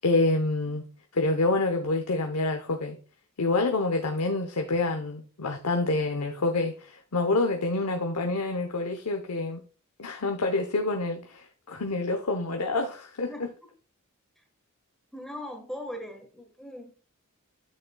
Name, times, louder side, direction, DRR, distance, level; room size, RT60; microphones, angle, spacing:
voice 1, 0.0-0.8 1.1-3.0 3.4-9.6 10.0-13.5, left 2 dB, 85° left, 0.9 m, -27 dB
voice 2, 15.1-16.9, left 1 dB, ahead, 1.3 m, -39 dB
8.5 x 6.4 x 2.3 m
head